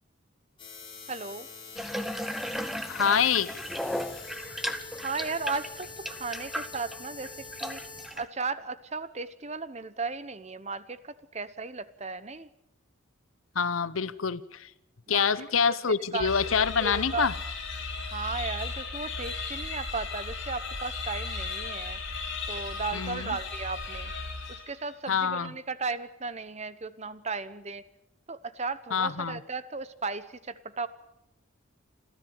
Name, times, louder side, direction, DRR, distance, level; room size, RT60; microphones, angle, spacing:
sound 1, 0.6-8.1, left 4 dB, 25° left, 6.6 m, -45 dB
voice 1, 1.1-1.5 5.0-5.9 6.2-7.3 7.6-7.8 8.2-12.5 15.1-15.6 16.1-16.3 16.8-17.3 18.0-22.0 22.5-24.1 24.7-27.8 28.3-30.9, right 4 dB, 35° right, 1.0 m, -35 dB
Water tap faucet / Bathtub (filling or washing), 1.8-8.2, equal, ahead, 1.0 m, -36 dB
voice 2, 2.9-3.5 13.5-14.7 15.1-17.3 22.9-23.4 25.1-25.5 28.9-29.4, left 6 dB, 90° left, 0.9 m, -26 dB
sound 2, 16.2-24.9, left 4 dB, 70° left, 5.8 m, -36 dB
27.0 x 13.5 x 8.9 m
head